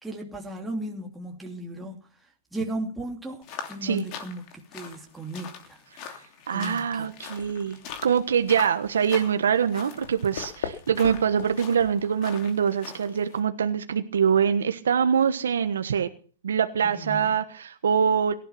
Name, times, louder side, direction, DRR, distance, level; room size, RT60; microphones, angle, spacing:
voice 1, 0.0-2.0 2.5-5.8 6.5-7.1 16.9-17.3, right 1 dB, 5° right, 2.6 m, -35 dB
sound 1, 3.4-13.4, left 7 dB, 40° left, 2.9 m, -43 dB
voice 2, 6.5-7.8 8.0-16.1 16.4-18.3, right 7 dB, 85° right, 1.3 m, -24 dB
sound 2, 6.9-12.5, left 8 dB, 70° left, 2.8 m, -42 dB
18.0 x 12.0 x 5.9 m
hypercardioid pair, 135°, 0 cm